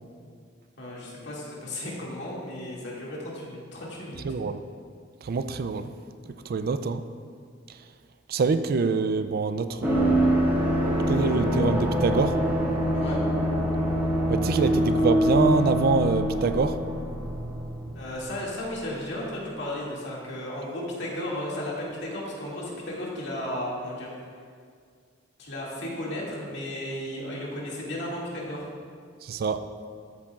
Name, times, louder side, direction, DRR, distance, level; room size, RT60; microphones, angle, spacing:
voice 1, 0.8-4.2 12.9-13.2 17.9-24.1 25.4-28.7, left 1 dB, 65° left, -5 dB, 2.3 m, -34 dB
voice 2, 4.2-4.6 5.2-5.9 6.5-7.0 8.3-10.4 11.1-12.4 14.3-16.8 29.2-29.7, right 4 dB, 50° right, 11 dB, 0.4 m, -25 dB
sound 1, 9.8-18.3 18.6-18.7, equal, 10° right, 1.7 m, -25 dB
13.5 x 8.4 x 2.4 m, 2.1 s
head